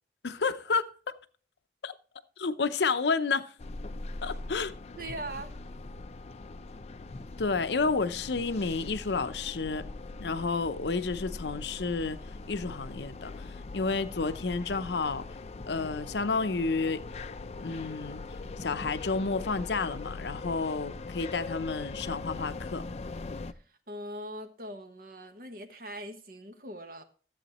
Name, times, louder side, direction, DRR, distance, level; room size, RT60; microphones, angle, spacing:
voice 1, 0.2-0.9 1.8-1.9 2.4-3.5 4.2-4.7 7.4-9.9 10.2-12.2 12.5-15.3 15.7-17.0 17.6-18.2 18.6-22.8, left 4 dB, 75° left, 0.6 m, -30 dB
sound 1, 3.6-23.5, left 3 dB, 35° left, 0.4 m, -41 dB
voice 2, 5.0-5.5 23.7-27.0, right 1 dB, 55° right, 1.3 m, -41 dB
14.0 x 8.0 x 3.0 m
head